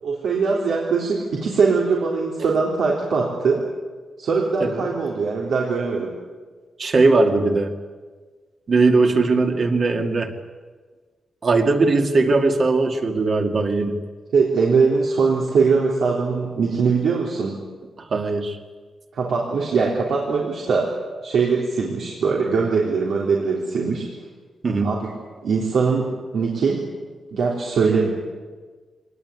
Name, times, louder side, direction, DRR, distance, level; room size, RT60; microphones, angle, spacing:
voice 1, 0.0-3.6 4.2-6.1 14.3-17.6 19.1-20.9 21.2-24.1 24.8-25.1 25.4-26.8 27.3-28.1, right 5 dB, 75° right, -3 dB, 3.7 m, -21 dB
voice 2, 6.8-7.7 8.7-10.3 11.4-14.0 18.0-18.6 24.6-24.9, right 3 dB, 40° right, 4 dB, 2.2 m, -19 dB
23.5 x 19.0 x 9.6 m, 1.4 s
wide cardioid pair, 165°, 0 cm